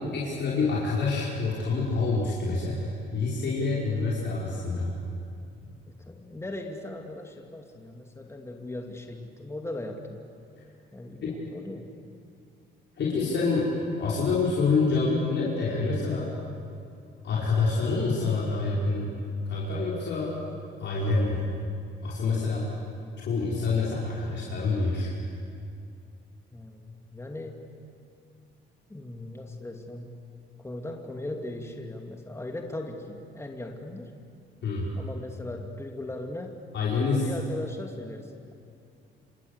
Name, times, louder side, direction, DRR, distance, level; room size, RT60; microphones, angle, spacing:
voice 1, 0.1-4.9 11.2-11.3 13.0-16.3 17.2-19.1 19.5-20.4 20.8-21.5 22.0-22.7 23.2-25.1 34.6-34.9 36.7-37.3, left 3 dB, 65° left, -5 dB, 5.3 m, -27 dB
voice 2, 5.9-10.2 10.9-12.0 26.5-27.7 28.9-30.3 30.6-34.1 34.9-36.7 37.2-38.5, left 1 dB, 15° left, 3 dB, 2.6 m, -38 dB
27.5 x 24.5 x 8.3 m, 2.5 s
cardioid pair, 90°, 20 cm